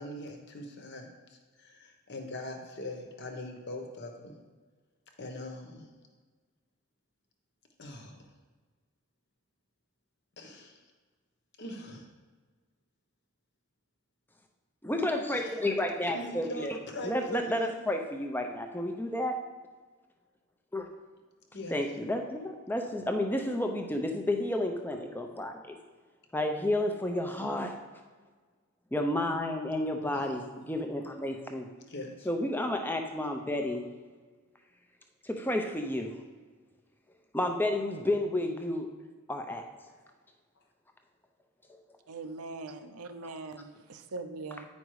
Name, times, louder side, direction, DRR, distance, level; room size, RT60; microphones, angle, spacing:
voice 1, 0.0-4.4 5.2-5.9 7.8-8.2 10.4-10.8 11.6-12.1 15.3-15.5 16.1-17.7 21.5-21.7 31.9-32.3, left 1 dB, 50° left, 4 dB, 1.0 m, -41 dB
voice 2, 14.8-16.8 17.0-19.4 20.7-20.9 21.7-25.8 26.3-27.7 28.9-31.7 32.3-33.9 35.2-36.1 37.3-38.9 39.3-39.6, left 1 dB, 10° left, 4 dB, 0.6 m, -31 dB
voice 3, 42.1-44.7, right 3 dB, 90° right, 8 dB, 0.7 m, -41 dB
8.9 x 5.3 x 4.8 m, 1.4 s
head